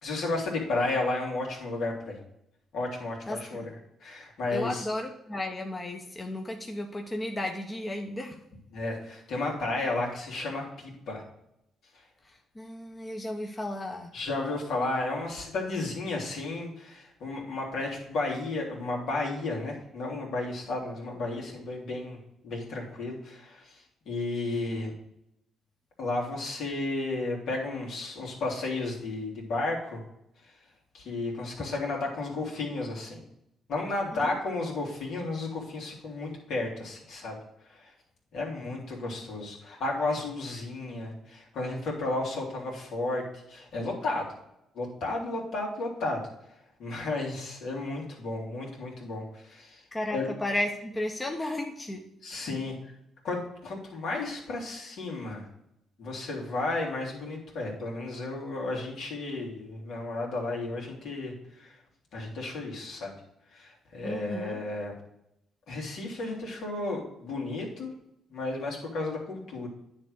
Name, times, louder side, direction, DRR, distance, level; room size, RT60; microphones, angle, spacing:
voice 1, 0.0-2.2 2.7-3.7 4.0-4.9 8.7-11.2 14.1-22.2 22.4-23.7 24.1-24.9 26.0-30.0 30.9-33.2 33.7-37.4 37.7-37.8 38.3-43.2 43.5-44.3 44.7-46.2 46.8-49.8 50.1-50.3 52.2-52.7 53.2-55.5 56.0-61.3 61.6-61.7 62.1-63.1 63.5-64.9 65.7-67.9 68.3-69.7, left 2 dB, 70° left, -1 dB, 2.6 m, -33 dB
voice 2, 3.3-3.7 4.5-8.4 12.6-14.1 34.1-34.3 49.9-52.0 64.0-64.6, left 1 dB, 20° left, 2 dB, 0.9 m, -34 dB
9.7 x 3.4 x 6.3 m, 0.81 s
cardioid pair, 90°, 0 cm